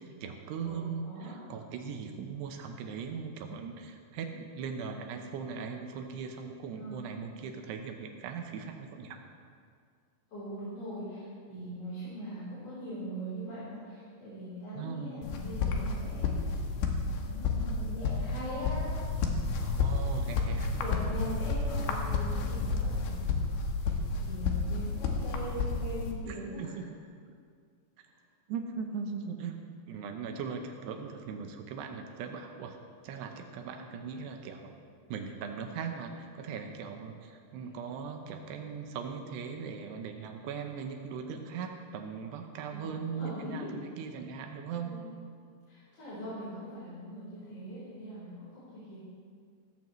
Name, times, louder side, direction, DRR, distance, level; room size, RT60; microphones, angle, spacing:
voice 1, 0.0-9.2 14.7-15.2 19.6-20.7 26.3-26.7 28.5-29.6 29.9-32.8 33.0-34.7 35.1-45.0, right 6 dB, 75° right, 4 dB, 2.8 m, -39 dB
voice 2, 0.6-1.4 6.8-7.1 10.3-16.4 16.7-18.9 20.6-23.4 23.8-26.8 28.1-28.2 37.6-37.7 42.7-43.7 44.7-45.0 45.7-49.0, equal, 35° left, -12 dB, 4.5 m, -41 dB
sound 1, 15.2-26.1, left 4 dB, 75° left, 3.2 m, -31 dB
17.0 x 14.0 x 3.2 m, 2.1 s
omnidirectional pair, 5.3 m